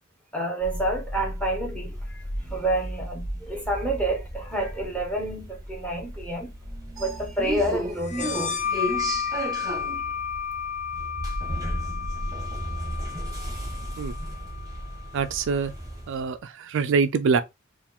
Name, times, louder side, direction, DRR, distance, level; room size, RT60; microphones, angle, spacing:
voice 1, 0.3-6.5 7.0-8.6 9.1-9.5, right 1 dB, 5° left, 1.2 m, -29 dB
sound 1, 0.6-16.3, equal, 15° right, 1.0 m, -34 dB
sound 2, 8.0-15.4, left 7 dB, 35° left, 0.7 m, -32 dB
voice 2, 15.1-15.7 16.1-17.4, right 5 dB, 60° right, 0.4 m, -24 dB
4.5 x 2.4 x 3.5 m
head